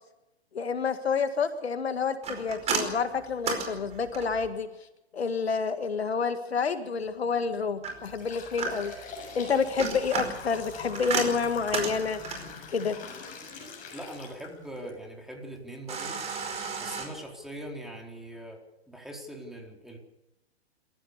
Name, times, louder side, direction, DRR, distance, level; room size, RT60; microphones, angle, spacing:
voice 1, 0.5-4.7 5.1-8.9 9.3-12.2 12.7-13.0, left 5 dB, 70° left, 10 dB, 1.9 m, -29 dB
sound 1, 2.2-4.5 7.8-9.1 9.6-12.6 15.9-17.1, right 5 dB, 20° right, 4.9 m, -33 dB
sound 2, 7.1-7.3 7.8-14.9 15.4-15.5 16.3-16.4 16.9-17.0 17.5-17.7, left 5 dB, 25° left, 7.0 m, -43 dB
voice 2, 13.9-16.2 16.8-20.0, right 1 dB, ahead, 1 dB, 4.4 m, -41 dB
26.0 x 15.5 x 6.9 m, 0.93 s
figure-of-eight pair, 120°, 32 cm